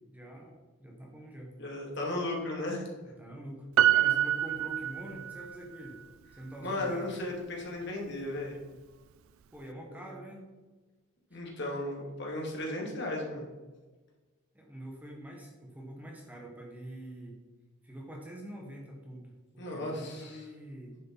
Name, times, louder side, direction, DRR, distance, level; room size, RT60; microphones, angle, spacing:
voice 1, 0.1-1.5 3.0-5.9 6.3-7.1 9.5-10.5 11.3-11.4 14.5-17.4 17.8-21.0, right 1 dB, 5° right, 0 dB, 1.2 m, -45 dB
voice 2, 1.6-2.9 6.6-8.6 9.9-10.0 11.3-13.5 19.6-20.5, left 1 dB, 50° left, -1 dB, 2.5 m, -35 dB
Piano, 3.8-5.6 5.9-6.0, right 12 dB, 70° right, 0.4 m, -26 dB
10.0 x 7.6 x 4.1 m, 1.2 s
head